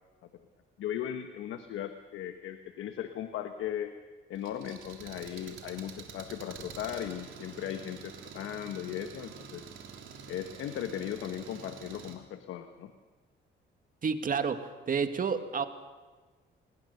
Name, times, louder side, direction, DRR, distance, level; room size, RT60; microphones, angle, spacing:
voice 1, 0.8-4.0 4.3-9.6 10.3-12.9, left 10 dB, 85° left, 7 dB, 1.3 m, -37 dB
Engine, 4.3-12.1, right 6 dB, 80° right, 3.4 m, -47 dB
voice 2, 14.0-15.6, right 6 dB, 45° right, 8 dB, 1.9 m, -30 dB
27.0 x 21.0 x 6.8 m, 1.3 s
cardioid pair, 90°, 20 cm